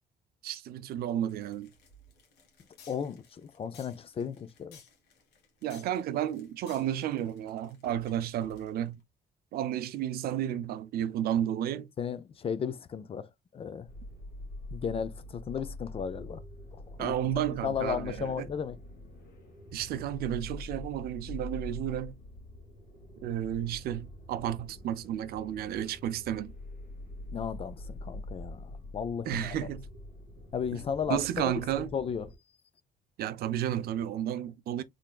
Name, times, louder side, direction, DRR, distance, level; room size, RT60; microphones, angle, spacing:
voice 1, 0.4-1.7 5.6-9.0 9.5-11.9 17.0-18.5 19.7-22.2 23.2-26.5 29.3-29.9 30.7-30.8 31.1-31.9 33.2-34.8, right 11 dB, 65° right, 0.5 m, -32 dB
sound 1, 1.3-8.9, left 3 dB, 90° left, 1.6 m, -57 dB
voice 2, 2.9-4.8 12.0-13.3 13.5-13.9 14.7-16.4 16.7-17.2 17.6-18.8 27.3-29.6 30.5-31.5 31.9-32.3, left 7 dB, 35° left, 0.5 m, -34 dB
sound 2, 13.9-32.4, left 1 dB, 65° left, 1.9 m, -45 dB
3.9 x 3.3 x 2.3 m
cardioid pair, 110°, 17 cm